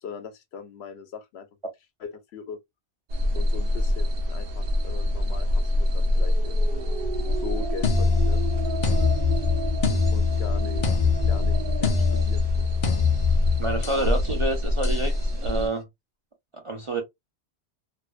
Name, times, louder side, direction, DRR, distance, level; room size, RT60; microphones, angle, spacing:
voice 1, 0.0-1.5 2.0-2.6 3.3-6.9 7.3-8.4 10.1-12.7 13.9-14.1, left 6 dB, 75° left, 0.8 m, -40 dB
sound 1, 3.1-15.7, left 1 dB, 65° right, 0.8 m, -25 dB
sound 2, 7.8-14.1 14.8-15.1, left 6 dB, 45° left, 0.5 m, -25 dB
voice 2, 13.6-15.1 15.4-15.9 16.5-17.0, right 2 dB, 40° right, 0.4 m, -28 dB
2.5 x 2.2 x 2.3 m
omnidirectional pair, 1.1 m